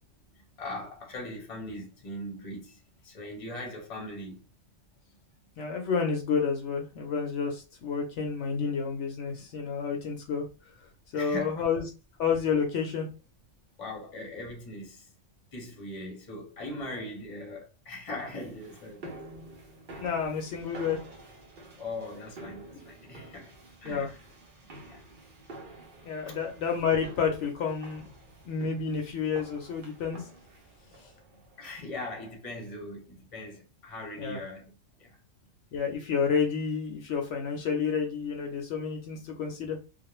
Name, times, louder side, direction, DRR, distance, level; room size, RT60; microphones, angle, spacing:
voice 1, 0.4-4.4 11.1-11.7 13.8-15.1 15.5-19.1 20.0-20.1 21.8-23.5 23.8-24.3 24.8-25.0 26.3-26.4 31.6-35.2, left 2 dB, 30° left, 0.8 m, -40 dB
voice 2, 5.6-10.4 11.1-11.8 12.2-13.1 20.0-21.0 23.9-24.1 26.0-28.1 28.4-30.2 34.2-34.4 35.7-39.8, left 6 dB, 70° left, 0.9 m, -30 dB
sound 1, 18.1-32.0, right 2 dB, 50° right, 0.8 m, -49 dB
2.4 x 2.1 x 3.0 m
omnidirectional pair, 1.3 m